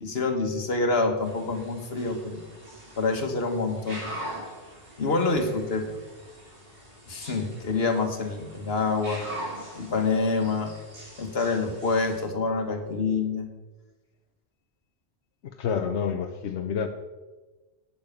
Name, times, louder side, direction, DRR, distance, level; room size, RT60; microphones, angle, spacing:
voice 1, 0.0-2.4 3.0-4.0 5.0-5.8 7.1-9.2 9.8-10.7 11.2-13.5, left 3 dB, 65° left, 5 dB, 1.7 m, -26 dB
sound 1, 1.2-12.2, equal, 85° right, 3.9 m, -43 dB
voice 2, 15.4-16.9, left 7 dB, 90° left, 5 dB, 1.0 m, -28 dB
9.1 x 8.7 x 7.2 m, 1.2 s
omnidirectional pair, 1.1 m